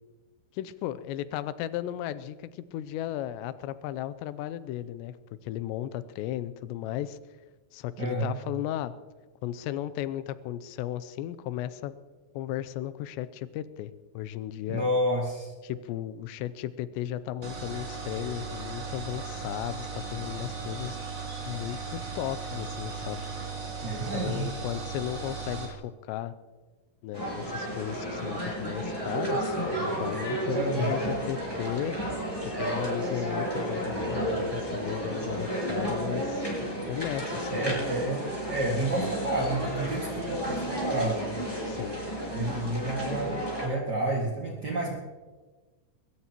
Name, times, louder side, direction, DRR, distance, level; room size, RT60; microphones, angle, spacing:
voice 1, 0.5-5.2 5.4-7.2 7.7-8.9 9.4-11.9 12.3-14.9 15.6-21.0 21.5-23.2 24.1-26.3 27.0-32.0 32.4-36.5 36.9-37.7 41.6-42.0, left 12 dB, 85° left, 14 dB, 2.6 m, -35 dB
voice 2, 8.0-8.3 14.7-15.5 23.8-24.5 30.5-31.0 37.5-41.2 42.3-43.3 43.6-45.0, right 1 dB, 85° right, -3 dB, 0.9 m, -30 dB
sound 1, 17.4-25.7, right 4 dB, 40° right, 1.1 m, -37 dB
sound 2, 27.1-43.7, equal, 5° left, 5.5 m, -32 dB
22.5 x 19.5 x 3.0 m, 1.3 s
omnidirectional pair, 5.6 m